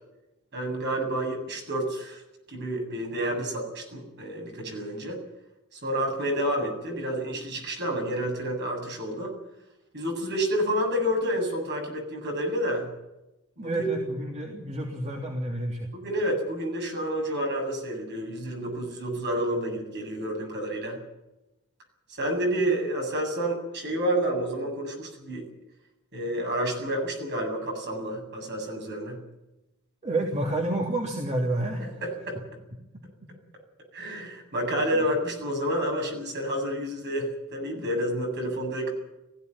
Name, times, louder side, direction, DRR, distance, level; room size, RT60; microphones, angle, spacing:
voice 1, 0.5-2.2 2.5-5.2 5.7-9.3 9.9-12.9 13.6-14.1 15.9-21.0 22.1-25.5 26.1-29.2 32.0-32.4 33.9-38.9, right 1 dB, 50° right, 2 dB, 7.8 m, -29 dB
voice 2, 13.6-15.9 30.0-32.0 32.3-32.4 34.9-35.1, right 1 dB, 30° right, 0 dB, 3.2 m, -29 dB
20.5 x 16.0 x 9.8 m, 0.92 s
head